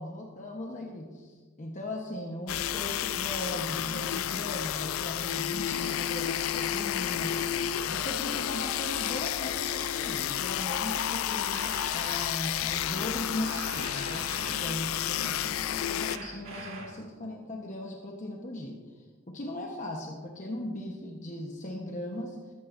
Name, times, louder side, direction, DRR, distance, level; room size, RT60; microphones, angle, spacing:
voice 1, 0.0-7.4 7.9-18.8 19.3-22.4, left 1 dB, 40° left, 0 dB, 1.1 m, -38 dB
sound 1, 2.5-16.2, left 10 dB, 90° left, 0.4 m, -31 dB
sound 2, 11.5-12.4 13.4-15.0 16.0-17.1, right 3 dB, 90° right, 2.2 m, -43 dB
14.0 x 14.0 x 2.6 m, 1.4 s
head